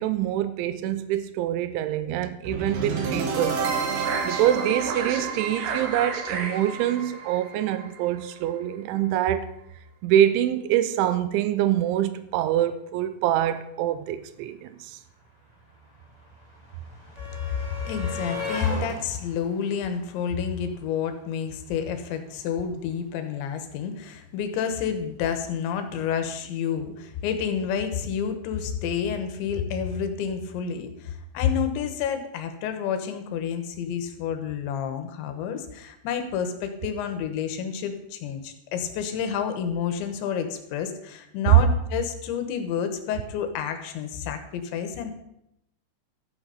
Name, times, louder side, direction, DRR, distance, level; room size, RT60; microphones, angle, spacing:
voice 1, 0.0-3.6 3.9-9.5 10.0-15.0 41.4-41.6, right 12 dB, 90° right, 3.1 m, -24 dB
sound 1, 2.4-8.5, right 5 dB, 60° right, 2.7 m, -29 dB
sound 2, 14.4-14.5 14.6-20.8 22.0-22.1 22.4-22.5, left 2 dB, 15° right, 1.5 m, -38 dB
voice 2, 17.8-45.1, left 7 dB, 75° left, 3.3 m, -29 dB
13.5 x 8.0 x 5.7 m
omnidirectional pair, 5.4 m